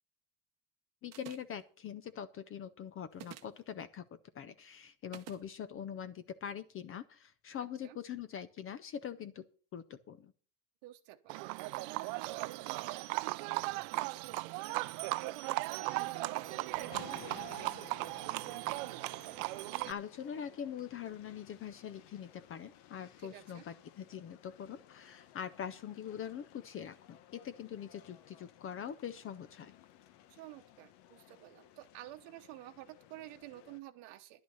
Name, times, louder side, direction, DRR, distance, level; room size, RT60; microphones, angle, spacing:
voice 1, 1.0-4.1 4.3-9.5 9.7-10.3 19.8-29.7, left 8 dB, 30° left, 13 dB, 0.5 m, -43 dB
sound 1, 1.1-1.6 3.1-3.6 5.1-5.4, right 12 dB, 35° right, 0.8 m, -49 dB
voice 2, 10.8-18.5 23.2-23.6 30.3-34.4, right 15 dB, 70° right, 6 dB, 1.0 m, -52 dB
Livestock farm animals working animals, 11.3-19.9, right 22 dB, 85° right, 0.6 m, -37 dB
sound 2, 15.8-33.8, left 12 dB, 65° left, 1.1 m, -58 dB
11.0 x 9.0 x 5.5 m, 0.39 s
cardioid pair, 170°, 45 cm